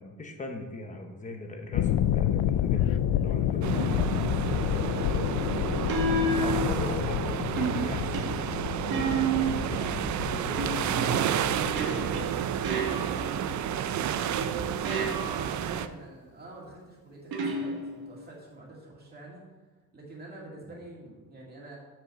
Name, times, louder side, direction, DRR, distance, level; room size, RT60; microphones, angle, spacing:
voice 1, 0.0-4.0 6.4-8.4 8.8-12.1 20.7-20.8, left 2 dB, 20° left, 4 dB, 0.9 m, -40 dB
sound 1, 1.7-14.3 14.6-14.9, left 10 dB, 80° left, 0.5 m, -30 dB
voice 2, 3.5-5.3 14.6-19.5 19.9-21.8, right 1 dB, 25° right, -3 dB, 2.2 m, -46 dB
sound 2, 3.6-15.9, right 9 dB, 55° right, 0.4 m, -31 dB
sound 3, 3.8-4.1 5.9-7.1 7.6-9.8 10.6-13.6 14.3-15.6 17.3-18.2, right 3 dB, 80° right, 1.4 m, -31 dB
7.4 x 5.5 x 6.5 m, 1.3 s
wide cardioid pair, 175°, 35 cm